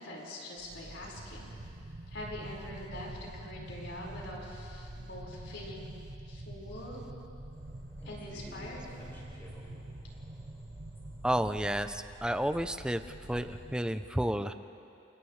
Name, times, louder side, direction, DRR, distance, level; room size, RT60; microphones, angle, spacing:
voice 1, 0.0-1.5 2.1-5.8 6.3-7.0 8.0-8.8, left 1 dB, 70° left, -4 dB, 5.0 m, -44 dB
sound 1, 0.6-13.8, right 1 dB, 70° right, 1.2 m, -46 dB
sound 2, 7.5-13.9, equal, 10° left, 4.8 m, -55 dB
voice 2, 11.2-13.0 13.3-14.5, equal, 5° right, 9 dB, 0.5 m, -31 dB
29.0 x 28.0 x 3.3 m, 2.7 s
head